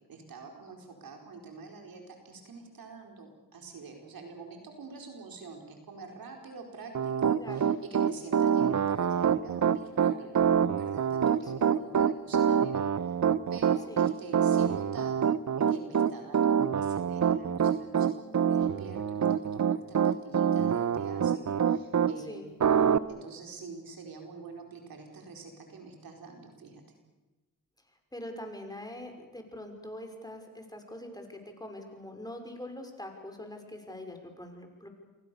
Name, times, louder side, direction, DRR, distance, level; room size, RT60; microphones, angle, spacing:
voice 1, 0.1-13.1 13.5-15.2 15.7-22.5 23.1-26.8, right 4 dB, 70° right, 3 dB, 4.6 m, -46 dB
Piano, 6.9-22.1 22.6-23.0, right 8 dB, 50° right, 1.0 m, -25 dB
voice 2, 21.4-21.8 22.2-22.5 22.9-23.0 28.1-34.9, left 1 dB, 10° left, 4 dB, 5.9 m, -44 dB
28.5 x 23.0 x 6.9 m, 1.1 s
cardioid pair, 60°, 36 cm